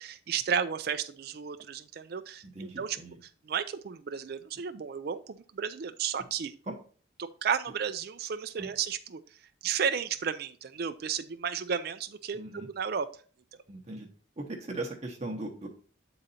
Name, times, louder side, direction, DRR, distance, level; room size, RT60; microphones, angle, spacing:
voice 1, 0.0-3.0 3.5-6.5 7.2-9.2 9.6-13.1, right 7 dB, 50° right, 9 dB, 0.4 m, -33 dB
voice 2, 2.5-3.2 6.7-6.8 8.6-8.7 12.3-12.7 13.7-14.1 14.4-15.7, right 2 dB, 35° right, 1 dB, 0.8 m, -38 dB
8.7 x 3.9 x 4.1 m, 0.43 s
head